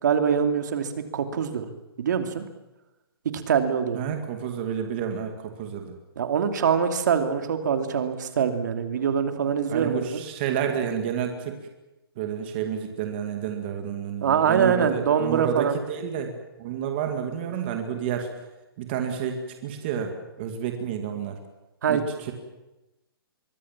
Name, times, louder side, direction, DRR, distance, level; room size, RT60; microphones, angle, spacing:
voice 1, 0.0-1.7 2.0-2.4 3.2-4.0 6.2-10.2 14.2-15.7 21.8-22.0, right 7 dB, 50° right, 7 dB, 2.9 m, -24 dB
voice 2, 3.9-6.0 9.7-11.6 12.2-18.3 18.8-21.4 21.9-22.3, right 8 dB, 25° right, 4 dB, 2.2 m, -30 dB
25.0 x 23.5 x 7.5 m, 0.98 s
hypercardioid pair, 175°, 13 cm